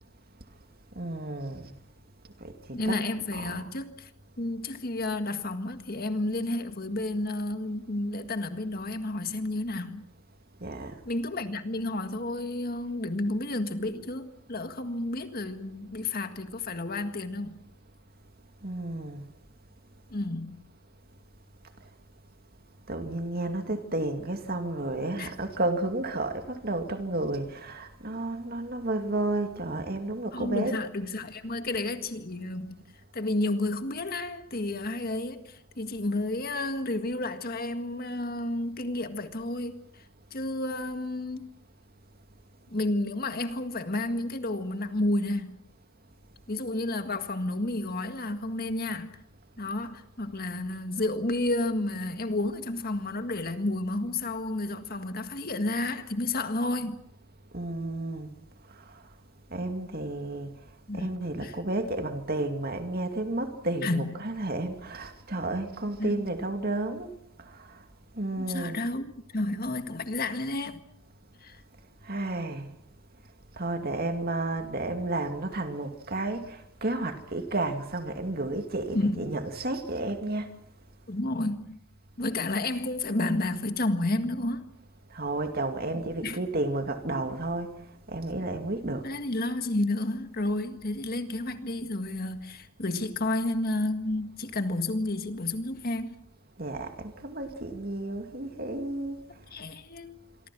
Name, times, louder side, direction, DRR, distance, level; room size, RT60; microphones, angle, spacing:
voice 1, 0.9-1.8 2.4-3.0 3.3-3.7 10.6-11.0 18.6-19.3 22.9-30.8 57.5-58.3 58.7-59.0 59.5-60.6 60.9-67.8 68.1-68.9 72.0-72.7 73.5-80.5 85.1-89.1 96.6-99.2, right 2 dB, 45° right, 2.5 m, -32 dB
voice 2, 2.7-4.1 4.4-10.1 11.0-17.7 20.1-20.6 25.2-25.3 30.3-32.7 33.1-40.0 40.3-41.5 42.7-45.6 46.5-49.2 49.6-57.0 60.9-61.5 63.8-64.2 66.0-66.3 68.4-70.8 71.4-71.6 78.9-79.3 81.1-81.8 82.2-84.7 85.9-86.4 89.0-96.2 99.5-100.2, left 2 dB, 45° left, 1.8 m, -31 dB
27.0 x 24.0 x 6.1 m
head